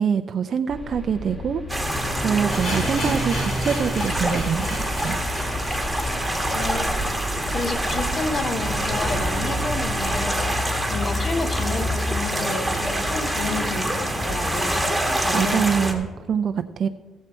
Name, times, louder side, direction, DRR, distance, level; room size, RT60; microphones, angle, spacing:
voice 1, 0.0-1.6 2.1-5.2 15.3-16.9, right 7 dB, 55° right, 8 dB, 0.4 m, -24 dB
sound 1, 0.7-10.3, left 2 dB, 20° left, 2.2 m, -37 dB
sound 2, 1.7-15.9, equal, ahead, 1.8 m, -25 dB
sound 3, 2.5-8.4 8.7-8.8 9.0-9.1 9.7-9.8, left 1 dB, 75° left, 3.4 m, -35 dB
voice 2, 6.5-6.9 7.5-14.8 15.2-15.7, left 3 dB, 45° left, 5 dB, 1.6 m, -30 dB
16.0 x 7.3 x 4.4 m, 1.3 s
cardioid pair, 90°, 0 cm